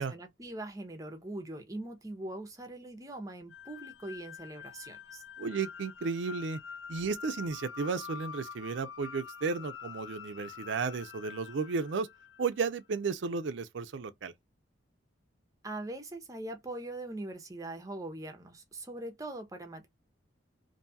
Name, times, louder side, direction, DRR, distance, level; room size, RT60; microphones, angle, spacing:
voice 1, 0.0-5.2 15.6-19.9, right 1 dB, 15° right, 0.6 m, -42 dB
sound 1, 3.5-12.7, left 7 dB, 75° left, 0.6 m, -46 dB
voice 2, 5.4-6.6 6.9-12.1 12.4-14.3, right 4 dB, 65° right, 0.4 m, -33 dB
2.6 x 2.3 x 2.6 m
head